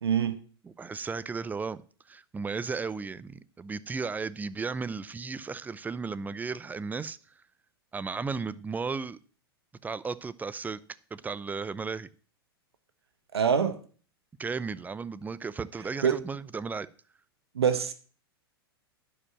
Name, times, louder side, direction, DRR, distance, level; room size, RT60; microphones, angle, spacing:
voice 1, 0.0-0.4 13.3-13.8 16.0-16.2 17.5-17.9, right 7 dB, 80° right, 1.1 m, -25 dB
voice 2, 0.6-1.8 2.1-7.2 7.9-9.2 9.8-10.8 11.1-12.1 14.4-16.9, right 4 dB, 15° right, 0.6 m, -35 dB
11.0 x 5.1 x 7.3 m
hypercardioid pair, 100°, 13 cm